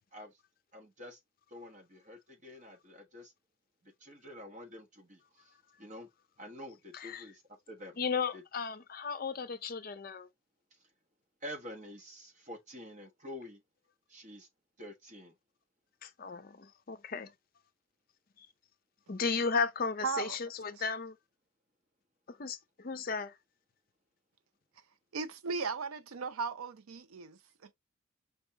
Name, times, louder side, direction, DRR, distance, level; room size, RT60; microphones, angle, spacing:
voice 1, 0.7-1.2 1.5-3.3 3.8-6.1 6.4-8.0 8.3-8.4 10.7-10.9 11.4-13.6 14.1-14.5 14.8-15.4, left 1 dB, 35° right, 1.2 m, -48 dB
voice 2, 6.9-7.2 8.0-10.3 16.0-17.3 18.4-18.5 19.1-21.2 22.3-23.4, left 5 dB, 40° left, 0.5 m, -35 dB
voice 3, 20.0-20.4 25.1-27.7, right 4 dB, 85° right, 0.6 m, -37 dB
5.4 x 3.4 x 2.8 m
head